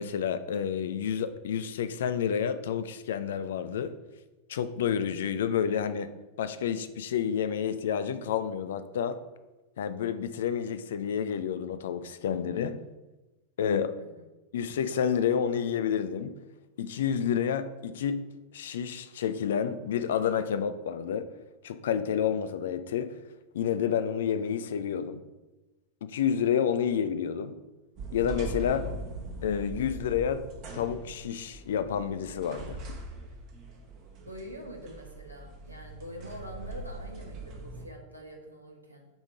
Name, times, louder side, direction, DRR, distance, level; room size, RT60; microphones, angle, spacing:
voice 1, 0.0-3.9 4.5-6.1 6.4-9.2 9.8-12.8 13.6-14.0 14.5-16.3 16.8-18.3 18.5-21.3 21.6-23.1 23.5-25.2 26.0-27.6 28.1-28.9 29.4-30.5 30.7-32.8, left 8 dB, 60° left, 0.5 m, -29 dB
sound 1, 28.0-37.9, right 2 dB, 40° right, 1.3 m, -41 dB
voice 2, 34.2-39.1, equal, 85° right, 1.4 m, -45 dB
9.0 x 3.7 x 4.8 m
figure-of-eight pair, 90°, 0 cm